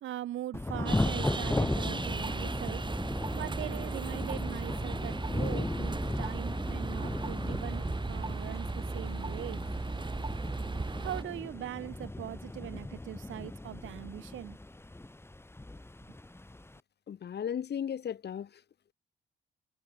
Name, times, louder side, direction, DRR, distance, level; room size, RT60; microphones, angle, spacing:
voice 1, 0.0-2.8 3.3-9.6 11.0-14.6, right 13 dB, 80° right, 2.3 m, -41 dB
Thunder / Rain, 0.5-16.8, left 2 dB, 10° left, 4.7 m, -37 dB
sound 1, 0.9-11.2, right 3 dB, 25° right, 6.1 m, -36 dB
voice 2, 17.1-18.5, left 8 dB, 55° left, 5.0 m, -35 dB
cardioid pair, 90°, 20 cm